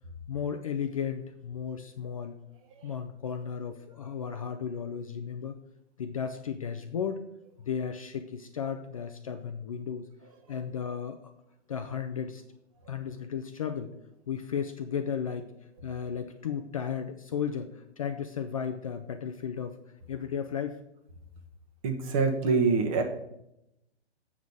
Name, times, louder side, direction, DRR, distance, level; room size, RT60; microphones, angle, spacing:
voice 1, 0.3-2.3 2.8-5.6 6.0-7.2 7.6-10.1 10.5-11.3 11.7-12.4 12.9-13.9 14.3-15.5 15.8-19.8 20.1-20.8, left 7 dB, 30° left, 7 dB, 0.5 m, -34 dB
voice 2, 21.8-23.0, right 4 dB, 30° right, 6 dB, 1.2 m, -25 dB
8.0 x 5.2 x 6.9 m, 0.83 s
hypercardioid pair, 145°, 35 cm